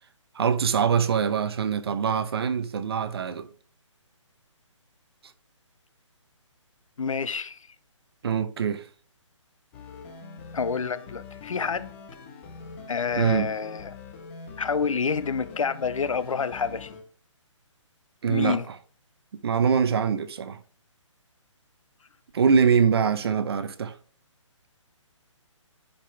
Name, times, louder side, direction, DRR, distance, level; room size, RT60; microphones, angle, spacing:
voice 1, 0.3-3.5 8.2-8.9 13.2-13.5 18.2-18.6 19.4-20.6 22.3-24.0, right 6 dB, 50° right, 0.9 m, -23 dB
voice 2, 7.0-7.7 10.5-12.0 12.9-14.0 14.6-16.9 18.3-18.7, left 5 dB, 85° left, 0.7 m, -28 dB
sound 1, 9.7-17.0, left 5 dB, 25° left, 1.1 m, -44 dB
10.0 x 5.2 x 3.3 m
hypercardioid pair, 160°, 16 cm